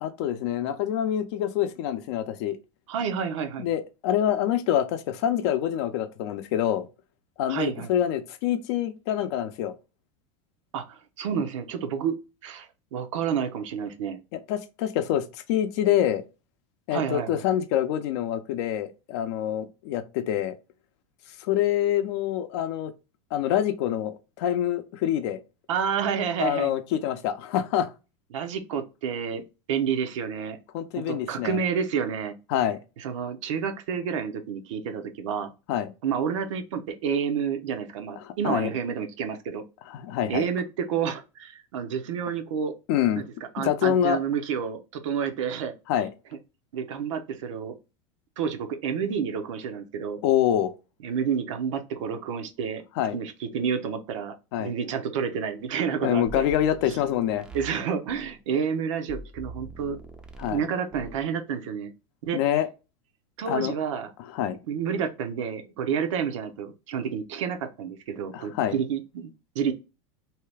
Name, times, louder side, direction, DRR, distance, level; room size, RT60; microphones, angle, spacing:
voice 1, 0.0-2.6 3.6-6.9 7.4-9.7 14.3-16.2 16.9-20.6 21.4-22.9 23.3-25.4 26.4-27.9 30.7-31.6 32.5-32.8 35.7-35.9 38.2-38.7 39.9-40.5 42.9-43.2 43.6-44.2 45.9-46.1 50.2-50.7 53.0-53.2 54.5-54.7 56.0-57.4 60.4-60.6 62.3-62.7 63.5-63.7 64.2-64.6 68.3-68.8, left 11 dB, 60° left, 0.5 m, -26 dB
voice 2, 2.9-3.7 7.5-7.9 10.7-12.2 12.4-14.2 16.9-17.4 25.7-26.7 28.3-29.4 29.7-30.6 31.1-32.3 33.0-35.5 36.0-39.6 40.3-42.7 43.1-43.2 43.5-45.7 46.7-47.7 48.4-50.2 51.0-52.8 53.1-54.3 54.6-56.5 56.9-57.0 57.5-60.0 60.4-61.9 62.2-62.4 63.4-64.1 64.7-69.7, right 7 dB, 80° right, 0.7 m, -29 dB
sound 1, 56.3-58.4 59.1-60.6 60.9-61.2, right 2 dB, 5° right, 0.4 m, -43 dB
2.8 x 2.3 x 3.3 m
supercardioid pair, 135°, 16 cm